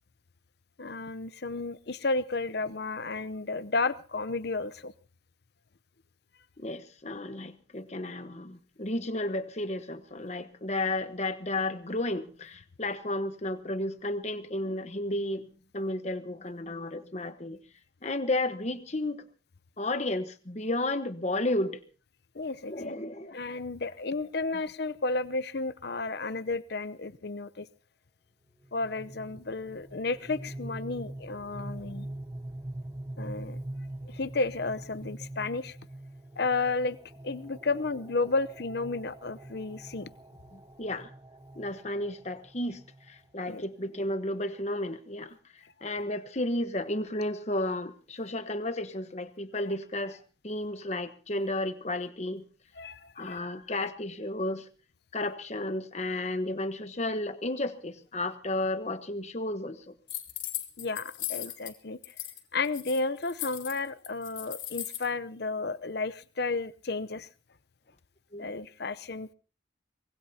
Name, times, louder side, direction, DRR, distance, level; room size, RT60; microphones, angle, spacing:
voice 1, 0.8-4.9 22.3-22.9 23.3-27.7 28.7-32.1 33.2-33.6 34.0-35.8 36.4-37.0 37.2-40.1 43.5-43.6 52.7-53.5 60.8-62.1 62.5-67.3 68.4-69.3, left 3 dB, 55° left, 15 dB, 0.8 m, -32 dB
voice 2, 6.6-17.6 18.0-19.2 19.8-21.8 22.7-23.4 40.5-41.1 41.5-42.8 43.1-45.4 45.8-50.2 50.4-52.4 53.2-54.7 55.1-59.9 68.3-68.5, left 1 dB, 35° left, 10 dB, 1.1 m, -33 dB
sound 1, 28.6-43.5, right 1 dB, 20° right, 0.8 m, -44 dB
sound 2, 60.1-61.7 62.0-62.4 62.6-65.1, left 13 dB, 80° left, 3.3 m, -37 dB
24.0 x 20.5 x 2.8 m, 0.38 s
head